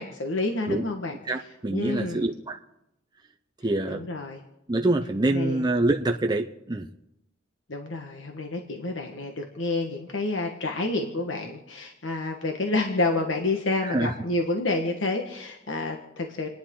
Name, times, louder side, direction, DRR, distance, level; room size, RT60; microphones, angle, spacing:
voice 1, 0.0-1.1 1.7-2.3 3.9-4.4 5.3-5.6 7.7-16.5, left 2 dB, 70° left, 3 dB, 1.4 m, -29 dB
voice 2, 1.2-2.6 3.6-4.0 4.7-6.9 13.8-14.1, right 2 dB, 20° right, 4 dB, 0.7 m, -25 dB
30.0 x 10.5 x 3.8 m, 0.86 s
head